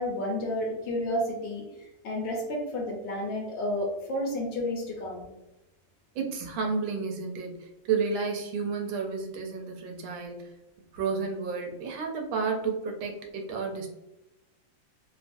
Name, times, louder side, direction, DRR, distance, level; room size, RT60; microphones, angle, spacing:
voice 1, 0.0-5.3, left 1 dB, 75° left, -3 dB, 1.3 m, -31 dB
voice 2, 6.1-10.5 10.9-13.9, right 5 dB, 90° right, 2 dB, 1.5 m, -31 dB
3.4 x 2.3 x 2.5 m, 0.96 s
omnidirectional pair, 2.1 m